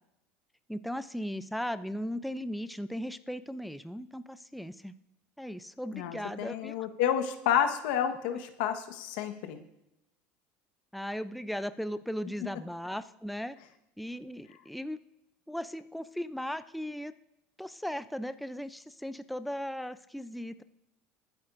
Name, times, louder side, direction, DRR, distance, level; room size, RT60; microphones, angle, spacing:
voice 1, 0.7-4.9 5.4-6.8 10.9-13.6 14.0-15.0 15.5-17.1 17.6-20.6, equal, ahead, 12 dB, 0.4 m, -37 dB
voice 2, 5.9-9.6, left 9 dB, 80° left, 8 dB, 1.2 m, -30 dB
22.0 x 8.8 x 2.6 m, 0.88 s
supercardioid pair, 130°, 5 cm